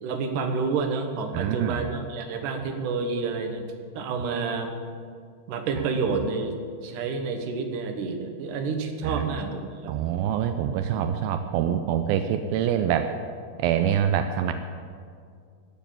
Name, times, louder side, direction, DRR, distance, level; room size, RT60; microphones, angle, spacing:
voice 1, 0.0-3.7 4.0-4.7 5.5-6.6 6.8-9.9, right 4 dB, 65° right, 5 dB, 2.3 m, -29 dB
voice 2, 1.3-1.9 9.0-9.4 9.9-13.1 13.6-14.5, right 9 dB, 85° right, 8 dB, 2.1 m, -25 dB
13.5 x 7.2 x 9.1 m, 2.2 s
omnidirectional pair, 4.8 m